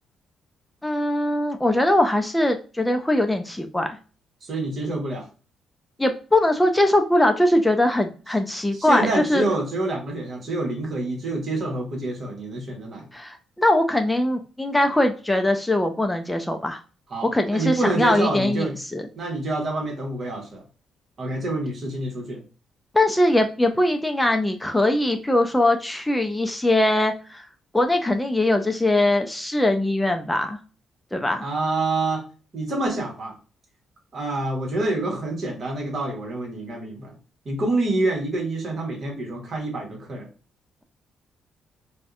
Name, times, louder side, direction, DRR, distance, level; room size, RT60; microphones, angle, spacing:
voice 1, 0.8-4.0 6.0-9.4 13.1-16.8 17.3-19.0 22.9-27.5 27.7-30.6 31.1-31.5, left 1 dB, 10° left, 5 dB, 0.3 m, -21 dB
voice 2, 4.4-5.3 8.7-13.1 17.1-18.8 19.2-20.6 21.2-22.4 31.4-32.2 32.5-33.3 34.1-37.2 37.4-40.3, right 2 dB, 50° right, 1 dB, 1.0 m, -27 dB
2.6 x 2.1 x 2.3 m, 0.35 s
cardioid pair, 90°, 0 cm